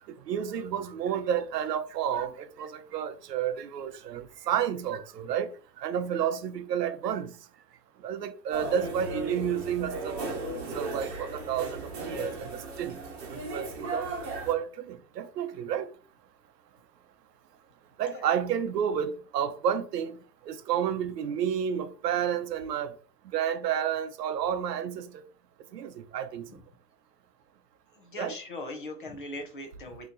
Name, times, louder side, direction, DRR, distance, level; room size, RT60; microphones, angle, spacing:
voice 1, 0.3-5.5 5.8-7.3 8.0-10.2 10.7-13.0 13.3-14.1 14.5-15.9 18.0-20.2 20.5-22.9 23.3-25.1 25.7-26.5 28.2-28.3, right 9 dB, 80° right, 0.6 m, -30 dB
sound 1, 8.5-14.5, right 3 dB, 40° right, 1.0 m, -36 dB
voice 2, 27.9-30.1, left 2 dB, 35° left, 0.5 m, -40 dB
4.0 x 2.9 x 2.5 m
hypercardioid pair, 170°, 49 cm